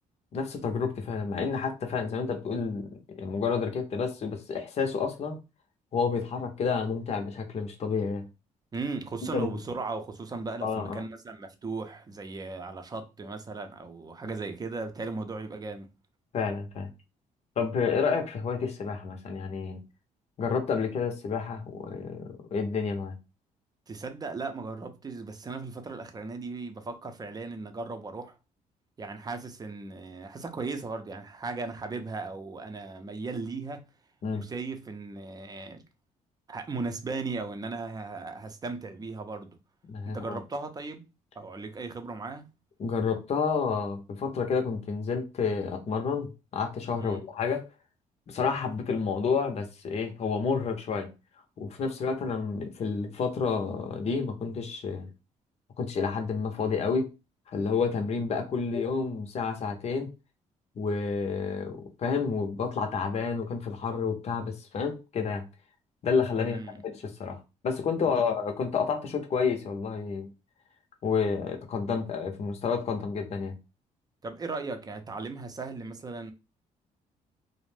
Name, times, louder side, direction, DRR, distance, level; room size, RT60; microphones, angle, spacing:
voice 1, 0.3-2.9 3.2-5.4 5.9-8.3 9.3-9.5 10.6-11.0 16.3-16.9 17.6-19.8 20.4-23.2 34.2-34.4 39.9-40.4 42.8-47.6 48.3-51.1 51.6-55.1 55.8-57.1 57.5-60.1 60.8-65.5 66.0-70.3 71.0-73.5, left 5 dB, 50° left, 0.7 m, -30 dB
voice 2, 8.7-15.9 23.9-28.4 29.0-33.8 34.3-35.8 36.5-39.6 40.1-41.0 41.4-42.5 47.0-47.2 66.4-66.8 74.2-76.3, right 3 dB, 25° right, 0.6 m, -37 dB
2.5 x 2.1 x 3.2 m
cardioid pair, 90°, 14 cm